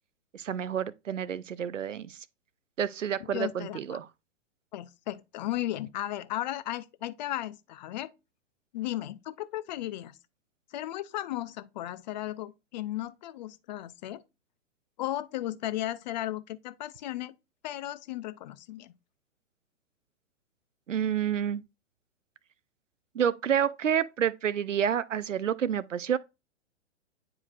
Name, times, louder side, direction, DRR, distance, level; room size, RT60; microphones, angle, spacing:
voice 1, 0.3-2.2 2.8-4.1 20.9-21.6 23.1-26.2, right 8 dB, 85° right, 0.6 m, -29 dB
voice 2, 3.2-4.0 4.7-8.1 8.7-10.2 10.7-14.2 15.0-17.3 17.6-18.9, left 14 dB, 35° left, 0.5 m, -35 dB
9.7 x 4.7 x 2.4 m
figure-of-eight pair, 115°, 37 cm